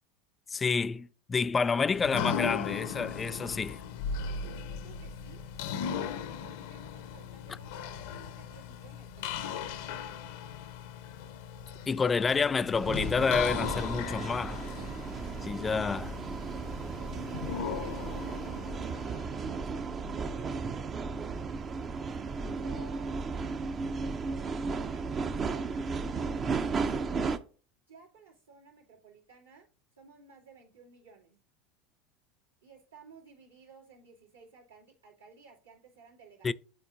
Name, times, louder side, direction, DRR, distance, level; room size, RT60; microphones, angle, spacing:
voice 1, 0.5-3.8 11.9-14.6 15.4-16.2 36.4-36.5, left 5 dB, 20° left, 0.3 m, -29 dB
sound 1, 1.9-19.7, left 7 dB, 60° left, 0.7 m, -38 dB
voice 2, 4.7-5.5 5.8-9.4 16.8-18.2 18.8-20.9 22.1-23.5 24.6-27.3 27.9-29.7 30.0-31.4 32.6-36.5, right 5 dB, 85° right, 2.3 m, -56 dB
sound 2, 12.7-27.4, right 4 dB, 30° right, 0.6 m, -34 dB
10.5 x 4.3 x 2.6 m
figure-of-eight pair, 75°, 0 cm